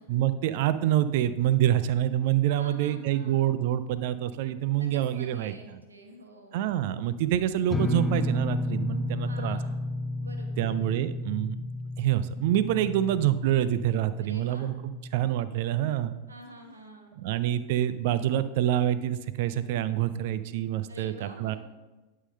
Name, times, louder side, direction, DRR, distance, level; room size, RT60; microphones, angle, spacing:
voice 1, 0.1-5.5 6.5-9.6 10.6-11.6 12.0-16.2 17.2-21.6, right 12 dB, 50° right, 14 dB, 0.4 m, -26 dB
voice 2, 2.6-3.5 4.8-6.7 9.2-9.8 10.2-10.8 14.2-14.7 16.3-17.2 20.9-21.6, right 1 dB, 75° right, 3 dB, 1.1 m, -47 dB
sound 1, 7.7-15.3, left 1 dB, 15° left, 0.5 m, -32 dB
11.0 x 3.8 x 5.4 m, 1.1 s
figure-of-eight pair, 90°, 0 cm